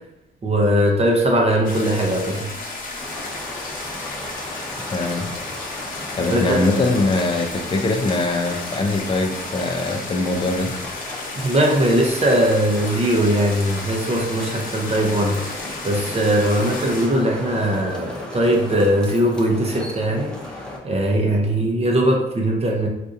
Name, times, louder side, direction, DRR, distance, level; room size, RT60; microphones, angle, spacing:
voice 1, 0.4-2.5 6.2-6.6 11.3-22.9, right 1 dB, 30° right, 0 dB, 0.7 m, -20 dB
sound 1, 1.6-17.1, left 2 dB, 45° left, 0.8 m, -33 dB
sound 2, 3.0-20.8, left 1 dB, 5° left, 0.8 m, -36 dB
voice 2, 4.9-5.3 6.1-10.7, left 2 dB, 25° left, 4 dB, 0.5 m, -22 dB
3.8 x 2.5 x 2.5 m, 0.89 s
cardioid pair, 90°, 20 cm